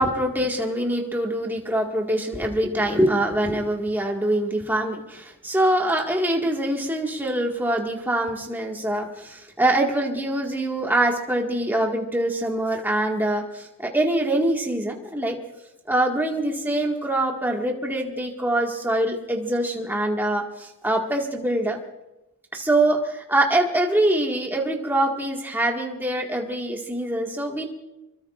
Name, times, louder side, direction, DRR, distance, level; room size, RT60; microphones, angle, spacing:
voice 1, 0.0-15.4 15.9-21.8 22.5-27.7, right 1 dB, 10° right, 0 dB, 1.8 m, -24 dB
25.0 x 22.5 x 2.5 m, 0.97 s
head